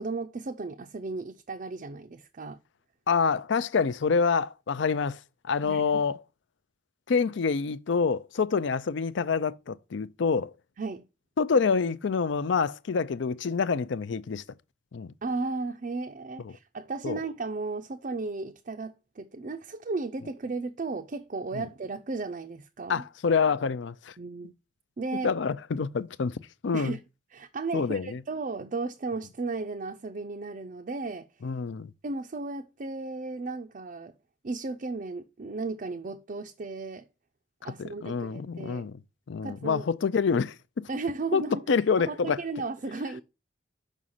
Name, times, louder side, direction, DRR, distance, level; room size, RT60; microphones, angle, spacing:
voice 1, 0.0-2.6 5.6-6.0 10.8-11.0 15.2-23.0 24.2-24.5 25.0-25.3 26.7-27.0 27.3-31.3 32.0-34.1 34.4-37.1 37.6-38.9 39.4-39.9 40.9-41.6 42.1-43.2, right 3 dB, 40° right, 0.4 m, -35 dB
voice 2, 3.1-6.2 7.1-10.5 11.4-14.4 14.9-15.1 16.4-16.6 17.0-17.2 21.5-21.7 22.9-24.1 25.2-27.0 27.7-28.2 31.4-31.9 37.6-39.0 39.3-40.9 41.3-42.4, left 5 dB, 65° left, 0.4 m, -27 dB
6.3 x 5.1 x 5.5 m
head